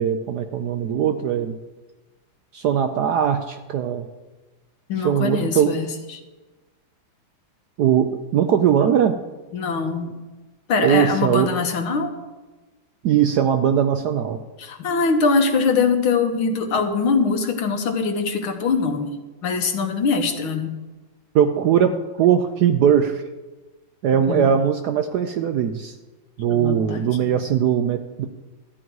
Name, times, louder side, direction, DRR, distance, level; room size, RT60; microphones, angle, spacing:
voice 1, 0.0-1.6 2.5-4.1 5.0-5.7 7.8-9.2 10.8-11.5 13.0-14.4 21.3-23.2 24.0-26.0 26.4-28.3, right 8 dB, 75° right, 7 dB, 0.9 m, -20 dB
voice 2, 4.9-5.9 6.1-6.2 9.5-10.1 10.7-12.1 14.6-20.8 24.3-24.5 26.5-27.3, left 4 dB, 80° left, 5 dB, 2.0 m, -22 dB
13.5 x 9.3 x 4.7 m, 1.2 s
omnidirectional pair, 2.2 m